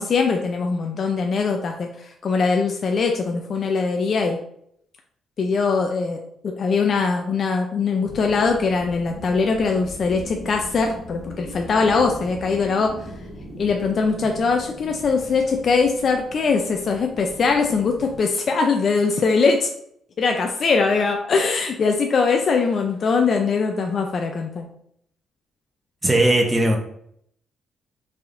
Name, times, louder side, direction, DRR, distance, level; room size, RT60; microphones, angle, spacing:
voice 1, 0.0-4.4 5.4-13.1 13.6-19.7 20.2-24.7, left 4 dB, 50° left, 3 dB, 0.5 m, -21 dB
sound 1, 8.0-18.2, equal, ahead, 1.5 m, -39 dB
voice 2, 26.0-26.8, right 1 dB, 20° right, 2 dB, 1.0 m, -18 dB
4.5 x 3.5 x 2.6 m, 0.69 s
cardioid pair, 90°, 0 cm